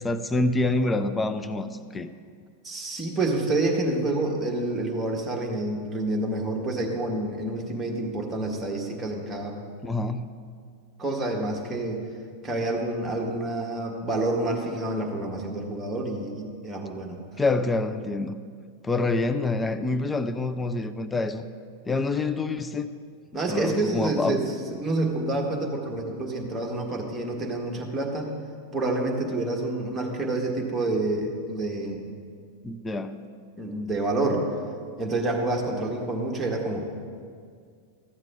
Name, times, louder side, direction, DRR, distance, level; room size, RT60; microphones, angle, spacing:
voice 1, 0.0-2.1 9.8-10.2 17.4-18.3 18.8-21.4 21.9-22.9 23.5-24.4 32.6-33.3, left 2 dB, 10° left, 9 dB, 0.5 m, -26 dB
voice 2, 2.6-9.6 11.0-12.0 12.4-17.2 23.3-28.3 28.7-32.0 33.6-34.4 35.0-37.0, right 2 dB, 10° right, -2 dB, 1.6 m, -28 dB
14.0 x 7.4 x 3.7 m, 2.1 s
figure-of-eight pair, 90°, 0 cm